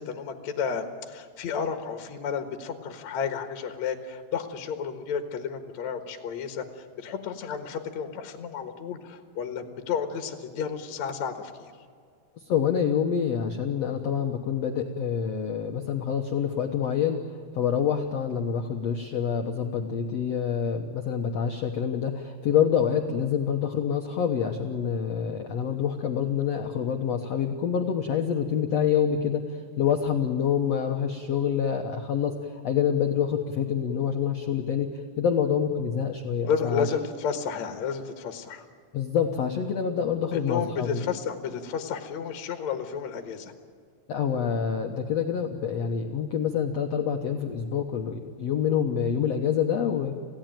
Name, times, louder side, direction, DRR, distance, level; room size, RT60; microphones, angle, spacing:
voice 1, 0.0-11.5 36.5-38.7 40.3-43.5, left 6 dB, 60° left, 6 dB, 2.1 m, -32 dB
voice 2, 12.4-17.2 17.5-36.9 38.9-41.1 44.1-50.1, left 8 dB, 90° left, 3 dB, 1.4 m, -27 dB
28.0 x 17.0 x 9.1 m, 2.1 s
omnidirectional pair, 4.8 m